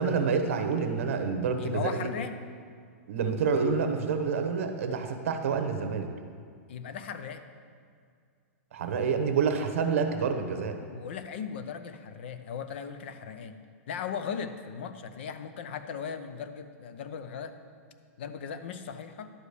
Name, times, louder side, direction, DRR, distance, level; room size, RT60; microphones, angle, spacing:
voice 1, 0.0-2.1 3.1-6.1 8.7-10.8, right 5 dB, 60° right, 6 dB, 1.0 m, -28 dB
voice 2, 1.6-2.3 6.7-7.4 10.9-13.6 13.9-17.5 18.2-19.3, left 7 dB, 45° left, 10 dB, 0.6 m, -37 dB
11.0 x 5.0 x 6.8 m, 2.1 s
supercardioid pair, 180°, 8 cm